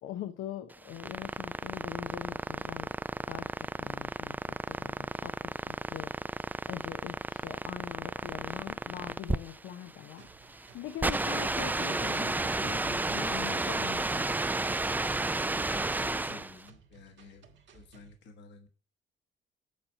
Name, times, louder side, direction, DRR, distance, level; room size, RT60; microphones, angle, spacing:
voice 1, 0.0-2.9 3.3-6.1 6.7-14.3, left 11 dB, 85° left, 8 dB, 0.7 m, -43 dB
sound 1, 0.7-16.6, right 2 dB, 10° right, 0.3 m, -32 dB
sound 2, 10.2-18.2, right 6 dB, 65° right, 1.5 m, -59 dB
voice 2, 15.5-17.5 17.7-18.7, left 4 dB, 65° left, 5 dB, 1.3 m, -52 dB
8.5 x 4.3 x 5.5 m, 0.39 s
cardioid pair, 90°, 20 cm